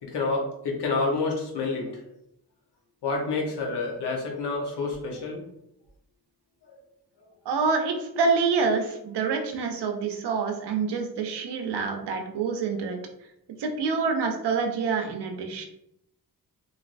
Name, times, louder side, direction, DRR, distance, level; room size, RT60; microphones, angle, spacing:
voice 1, 0.0-2.0 3.0-5.4 7.2-7.3, left 3 dB, 75° left, 0 dB, 1.0 m, -28 dB
voice 2, 7.5-13.0 13.6-15.6, right 5 dB, 80° right, 4 dB, 0.7 m, -27 dB
3.1 x 2.6 x 2.5 m, 0.78 s
wide cardioid pair, 105°, 40 cm